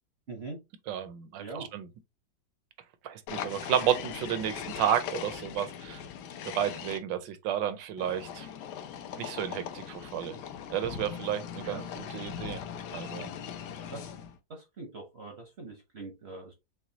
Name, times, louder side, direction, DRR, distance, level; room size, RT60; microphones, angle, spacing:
voice 1, 0.3-0.6 1.4-1.7 11.6-11.9 13.9-14.1 14.5-16.5, right 3 dB, 50° right, 0.7 m, -42 dB
voice 2, 0.9-1.9 3.0-6.0 6.5-8.5 9.2-10.4 10.7-12.6 12.9-13.3, right 10 dB, 75° right, 1.2 m, -32 dB
sound 1, 3.3-7.0 8.0-14.4, left 8 dB, 70° left, 1.1 m, -40 dB
6.0 x 2.3 x 2.7 m
omnidirectional pair, 2.1 m